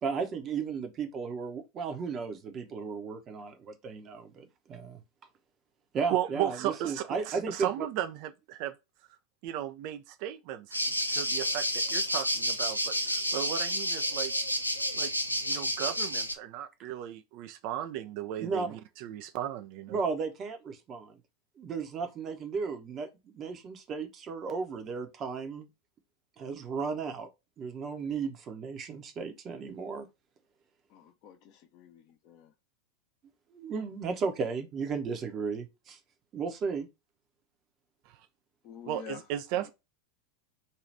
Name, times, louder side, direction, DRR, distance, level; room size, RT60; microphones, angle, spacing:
voice 1, 0.0-5.0 5.9-7.9 18.4-18.7 19.9-21.1 21.6-23.1 23.3-25.7 26.4-27.3 27.6-30.1 33.5-36.0 36.3-36.9, right 5 dB, 30° right, 0.8 m, -34 dB
voice 2, 6.1-8.8 9.4-14.3 14.9-15.1 15.4-20.0 38.1-38.2 38.9-39.7, right 12 dB, 45° right, 0.4 m, -35 dB
sound 1, 10.7-16.3, equal, 90° left, 0.4 m, -30 dB
voice 3, 30.9-32.5 38.6-39.2 39.6-39.7, left 8 dB, 45° left, 0.7 m, -48 dB
2.7 x 2.3 x 3.3 m
figure-of-eight pair, 85°, 0 cm